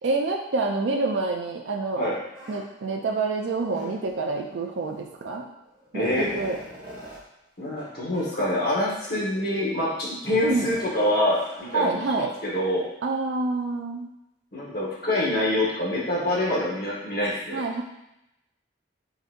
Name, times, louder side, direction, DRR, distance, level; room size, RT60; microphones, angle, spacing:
voice 1, 0.0-2.1 2.5-5.5 5.9-6.6 10.4-10.7 11.7-12.3 13.0-14.1 17.5-17.8, right 3 dB, 70° right, 2 dB, 0.4 m, -27 dB
sound 1, 2.3-2.6 3.7-4.2 5.2-5.3 5.7-7.2 7.7-7.9 8.1-8.3 9.0-9.4 10.2-12.1, equal, 30° right, 1.4 m, -41 dB
voice 2, 5.9-6.3 7.6-12.8 14.5-17.6, left 1 dB, 50° left, -6 dB, 1.3 m, -26 dB
3.9 x 3.9 x 2.5 m, 0.88 s
head